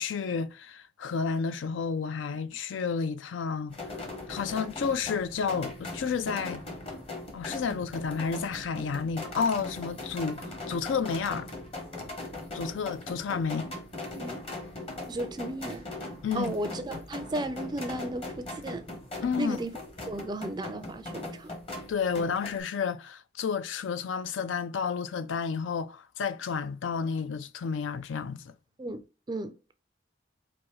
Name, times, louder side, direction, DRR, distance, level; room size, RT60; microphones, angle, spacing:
voice 1, 0.0-3.8 4.3-6.6 7.3-11.5 12.5-13.7 16.2-16.5 19.2-19.6 21.9-28.5, left 5 dB, 85° left, 0.4 m, -31 dB
sound 1, 3.7-22.6, left 2 dB, 30° left, 0.9 m, -40 dB
voice 2, 14.0-14.4 15.1-15.9 16.3-18.9 19.2-19.8 20.1-21.5 28.8-29.5, right 1 dB, 20° right, 0.4 m, -35 dB
4.8 x 2.5 x 3.0 m
head